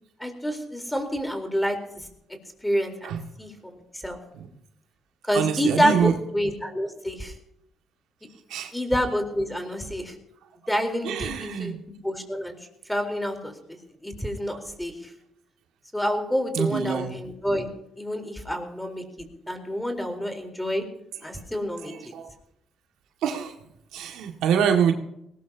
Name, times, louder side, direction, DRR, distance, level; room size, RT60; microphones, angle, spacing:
voice 1, 0.2-2.1 2.6-4.2 5.3-7.3 8.7-10.2 10.7-11.8 12.0-12.6 12.9-15.1 15.9-17.7 18.0-19.0 19.5-20.8 21.2-22.1, equal, 5° left, 5 dB, 4.1 m, -28 dB
voice 2, 5.3-6.2 8.5-8.7 11.0-11.8 16.5-17.2 21.8-22.3 23.2-23.5 23.9-24.9, right 8 dB, 90° right, 3 dB, 2.1 m, -25 dB
20.5 x 19.0 x 2.9 m, 0.77 s
cardioid pair, 90°, 0 cm